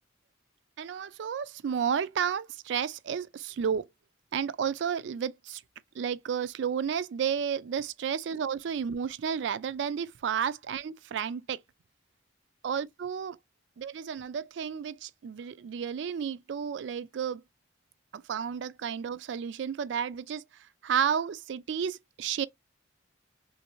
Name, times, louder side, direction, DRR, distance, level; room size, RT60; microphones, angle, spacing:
voice 1, 0.8-3.8 4.3-5.6 6.0-11.6 12.6-13.4 13.8-17.4 18.1-20.4 20.8-22.5, right 7 dB, 65° right, 0.3 m, -32 dB
3.1 x 2.6 x 2.9 m
head